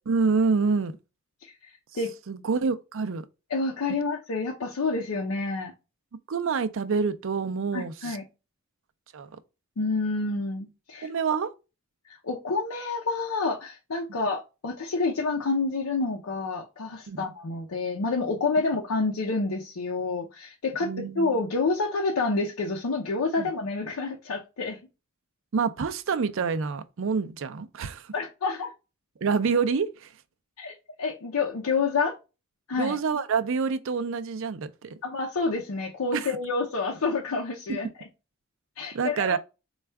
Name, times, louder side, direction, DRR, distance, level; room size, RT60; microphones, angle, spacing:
voice 1, 0.1-1.0 2.3-3.2 6.3-8.2 9.1-9.3 11.0-11.5 17.1-17.3 20.8-21.2 23.4-23.5 25.5-28.1 29.2-30.1 32.7-35.0 36.1-36.3 37.7-37.8 38.9-39.4, right 5 dB, 65° right, 0.4 m, -27 dB
voice 2, 1.4-2.1 3.5-5.7 7.7-8.2 9.8-11.1 12.1-24.8 28.1-28.7 30.6-32.2 32.7-33.0 35.0-37.9 38.8-39.4, left 3 dB, 90° left, 0.6 m, -28 dB
4.3 x 2.3 x 3.3 m
head